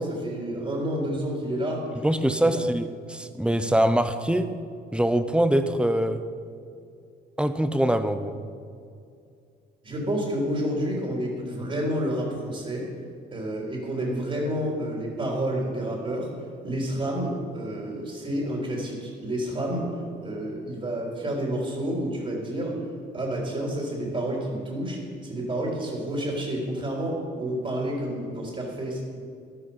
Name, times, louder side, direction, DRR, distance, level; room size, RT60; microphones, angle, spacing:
voice 1, 0.0-2.1 2.4-2.5 9.8-12.8 13.3-16.3 16.6-19.9 20.2-22.8 23.1-29.0, right 1 dB, 35° right, -2 dB, 3.8 m, -29 dB
voice 2, 2.0-4.5 4.9-6.2 7.4-8.4, right 1 dB, 5° right, 10 dB, 0.9 m, -23 dB
13.5 x 12.0 x 5.7 m, 2.3 s
cardioid pair, 90°, 18 cm